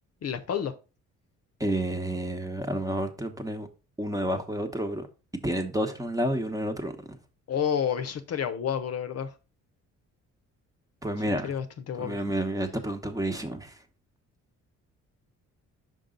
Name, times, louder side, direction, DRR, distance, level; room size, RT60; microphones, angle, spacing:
voice 1, 0.2-0.7 7.5-9.3 11.4-12.2, left 8 dB, 55° left, 0.8 m, -30 dB
voice 2, 1.6-3.7 4.0-5.1 5.4-7.2 11.0-11.5 12.0-13.8, right 1 dB, 10° right, 1.0 m, -30 dB
5.3 x 5.3 x 3.8 m
cardioid pair, 90°, 30 cm